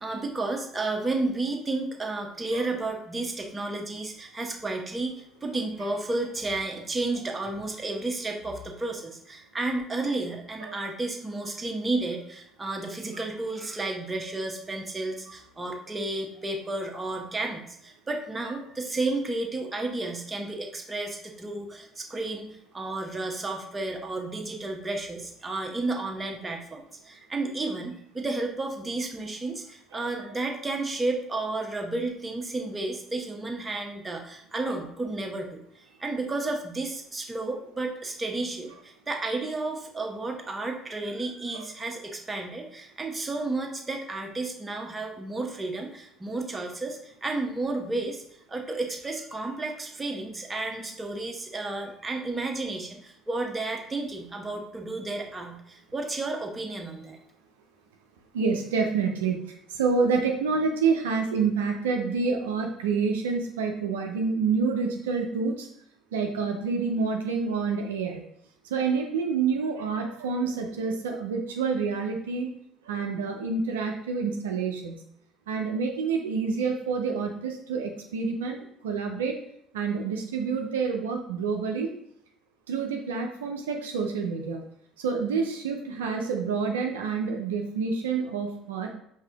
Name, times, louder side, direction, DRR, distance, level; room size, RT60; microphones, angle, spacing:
voice 1, 0.0-48.2 48.5-57.2, right 2 dB, 20° right, 2 dB, 0.9 m, -32 dB
voice 2, 29.9-30.3 41.5-41.7 58.3-65.7 66.1-68.2 68.7-72.5 72.8-75.0 75.5-78.6 78.8-79.4 79.7-81.9 82.7-84.6 85.0-88.9, right 5 dB, 80° right, 2 dB, 0.4 m, -28 dB
4.8 x 2.8 x 3.4 m, 0.70 s
hypercardioid pair, 60°, 0 cm